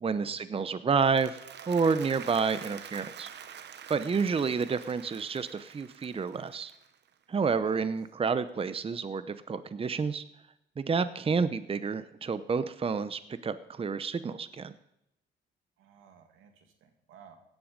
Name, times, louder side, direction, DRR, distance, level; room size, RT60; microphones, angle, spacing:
voice 1, 0.0-1.4 1.7-3.3 3.9-6.7 7.3-10.2 10.8-14.7, right 5 dB, 30° right, 13 dB, 0.7 m, -29 dB
Applause, 0.9-7.2, right 8 dB, 60° right, 1.1 m, -47 dB
voice 2, 15.8-17.4, right 7 dB, 90° right, 5 dB, 2.4 m, -55 dB
16.5 x 10.5 x 5.2 m, 0.81 s
cardioid pair, 90°, 20 cm